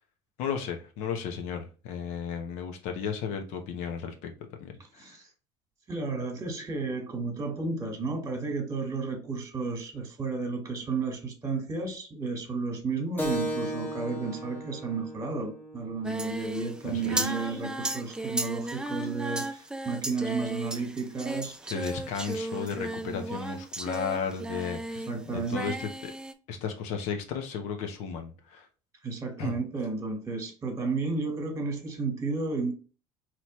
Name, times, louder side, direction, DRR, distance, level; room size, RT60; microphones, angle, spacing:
voice 1, 0.4-4.3 4.6-5.2 16.8-17.3 21.7-25.9 26.5-28.7 29.4-29.5, left 6 dB, 75° left, 1.0 m, -34 dB
voice 2, 5.9-21.7 25.1-25.8 29.0-32.7, right 4 dB, 25° right, 1.5 m, -32 dB
Keyboard (musical), 13.2-18.3, equal, 15° left, 1.1 m, -37 dB
Singing, 16.0-25.2 25.4-26.3, right 2 dB, 5° right, 0.4 m, -35 dB
4.1 x 3.1 x 3.1 m
supercardioid pair, 100°, 12 cm